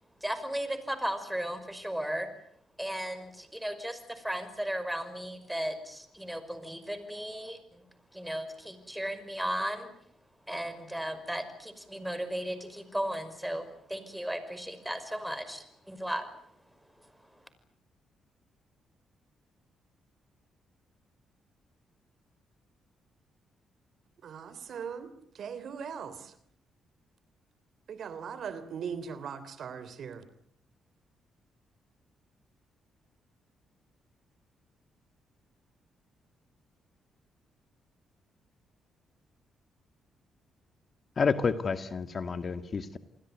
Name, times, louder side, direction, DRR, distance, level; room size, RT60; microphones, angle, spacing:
voice 1, 0.2-2.3 2.8-7.8 8.1-9.9 10.5-16.3 17.0-17.4, equal, 5° right, 11 dB, 5.6 m, -35 dB
voice 2, 24.2-26.3 27.9-30.2, right 7 dB, 65° right, 14 dB, 3.4 m, -40 dB
voice 3, 41.2-43.0, left 5 dB, 45° left, 11 dB, 2.0 m, -29 dB
28.0 x 21.0 x 9.4 m, 0.68 s
cardioid pair, 70°, 0 cm